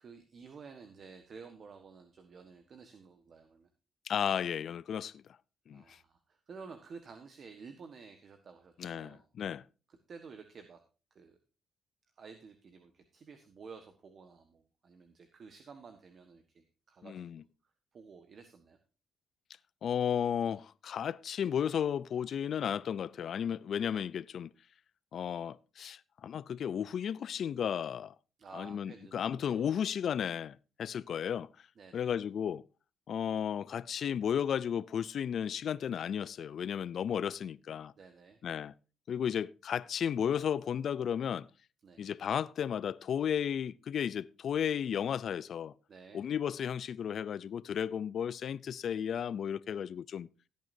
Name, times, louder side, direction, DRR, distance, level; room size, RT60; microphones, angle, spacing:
voice 1, 0.0-3.7 5.7-9.3 9.9-10.8 11.1-11.4 12.2-17.4 17.9-18.8 28.4-29.7 31.8-32.1 38.0-38.4 41.8-42.1 45.9-46.3, right 5 dB, 50° right, 1.4 m, -52 dB
voice 2, 4.1-5.2 5.7-6.0 8.8-9.6 17.0-17.4 19.8-24.5 25.1-28.1 28.5-31.5 31.9-32.6 33.1-37.9 38.4-38.7 39.1-41.5 42.0-45.7 46.1-50.3, left 8 dB, 60° left, 0.4 m, -34 dB
16.5 x 9.3 x 2.7 m
cardioid pair, 90°, 0 cm